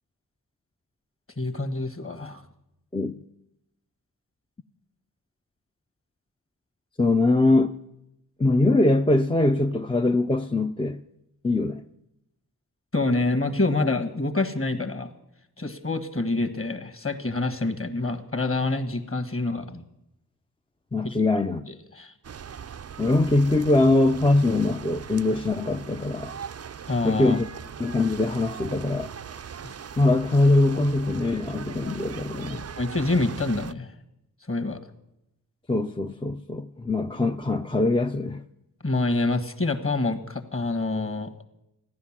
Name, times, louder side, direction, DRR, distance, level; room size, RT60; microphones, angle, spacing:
voice 1, 1.4-2.4 12.9-15.1 15.6-19.8 21.0-21.2 21.7-22.1 26.9-27.4 32.8-33.9 34.5-34.8 38.8-41.3, left 2 dB, 35° left, 1.5 m, -27 dB
voice 2, 2.9-3.2 7.0-7.8 8.4-11.0 11.4-11.8 20.9-21.7 23.0-26.3 27.0-27.5 27.8-29.1 30.0-32.6 35.7-38.4, left 2 dB, 15° left, 0.5 m, -22 dB
sound 1, 22.2-33.7, right 7 dB, 40° right, 0.5 m, -40 dB
15.0 x 10.5 x 7.3 m
cardioid pair, 55°, 38 cm